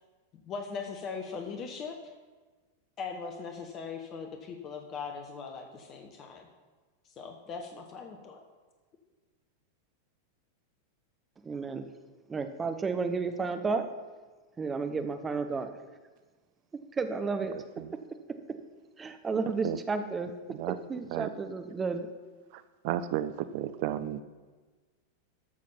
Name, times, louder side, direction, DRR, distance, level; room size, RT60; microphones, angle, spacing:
voice 1, 0.3-2.0 3.0-6.5 7.2-8.4, left 5 dB, 30° left, 4 dB, 1.2 m, -40 dB
voice 2, 11.4-11.8 12.3-13.8 14.6-15.7 17.0-17.5 19.0-20.3 20.9-22.1, right 4 dB, 15° right, 8 dB, 1.0 m, -32 dB
voice 3, 22.8-24.2, right 12 dB, 50° right, 13 dB, 0.5 m, -32 dB
13.5 x 6.4 x 5.7 m, 1.3 s
figure-of-eight pair, 90°, 0 cm